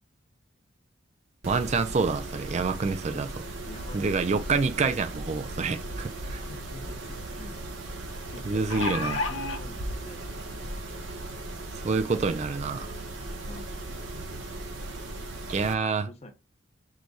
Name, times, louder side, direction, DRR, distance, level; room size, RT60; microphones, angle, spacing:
Mechanisms, 1.4-15.7, right 1 dB, 70° right, 0.8 m, -37 dB
voice 1, 1.5-3.4 3.9-6.4 8.5-9.2 11.8-12.9 15.5-16.1, right 4 dB, 35° right, 0.3 m, -27 dB
voice 2, 3.7-4.2 6.2-7.6 8.3-10.3 13.5-13.9 16.1-16.3, left 2 dB, 30° left, 0.6 m, -46 dB
sound 1, 6.3-6.4 6.7-6.8 8.4-9.6 10.5-10.6 11.0-11.1, left 3 dB, 85° left, 0.7 m, -30 dB
4.7 x 2.2 x 4.0 m
head